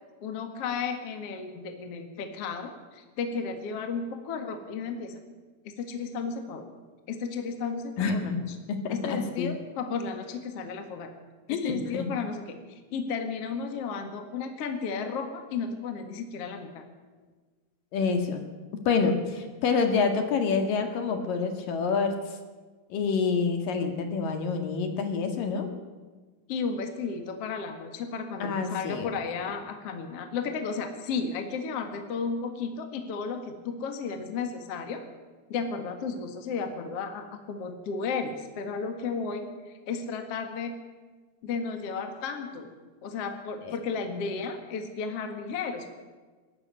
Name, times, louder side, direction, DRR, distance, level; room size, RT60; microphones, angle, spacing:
voice 1, 0.2-5.2 5.6-6.7 7.1-8.6 8.9-11.1 11.5-16.9 26.5-35.0 35.5-40.8 41.4-42.7 43.0-46.0, left 5 dB, 50° left, 6 dB, 2.3 m, -33 dB
voice 2, 8.0-8.4 8.7-9.5 11.5-12.1 17.9-18.4 18.7-22.1 22.9-25.7 28.4-29.1 43.6-43.7, left 5 dB, 65° left, 6 dB, 3.2 m, -27 dB
23.0 x 13.5 x 9.6 m, 1.3 s
omnidirectional pair, 4.6 m